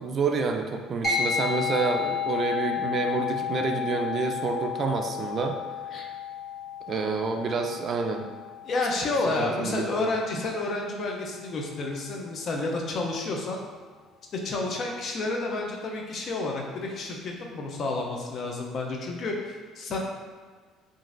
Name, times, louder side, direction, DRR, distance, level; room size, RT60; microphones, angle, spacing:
voice 1, 0.0-5.5 6.9-8.2 9.4-10.1, right 4 dB, 50° right, 4 dB, 0.3 m, -28 dB
sound 1, 1.0-10.8, left 7 dB, 20° left, 1.2 m, -32 dB
voice 2, 8.6-13.6 14.3-20.0, left 2 dB, 55° left, 0 dB, 0.5 m, -30 dB
2.9 x 2.5 x 2.5 m, 1.5 s
supercardioid pair, 80°, 0 cm